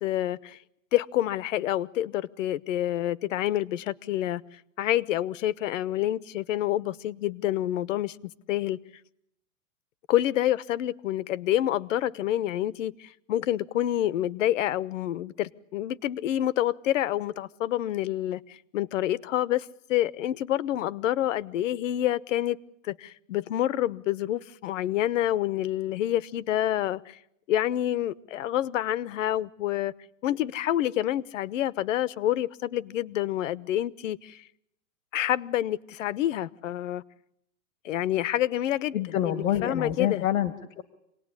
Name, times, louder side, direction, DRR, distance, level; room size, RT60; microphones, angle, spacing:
voice 1, 0.0-0.6 0.9-8.8 10.1-22.6 22.8-27.2 27.5-29.9 30.2-34.4 35.1-37.0 37.8-40.2, left 13 dB, 65° left, 18 dB, 1.1 m, -28 dB
voice 2, 38.9-40.8, left 11 dB, 85° left, 11 dB, 1.7 m, -27 dB
27.0 x 19.0 x 9.8 m, 0.81 s
supercardioid pair, 145°, 40 cm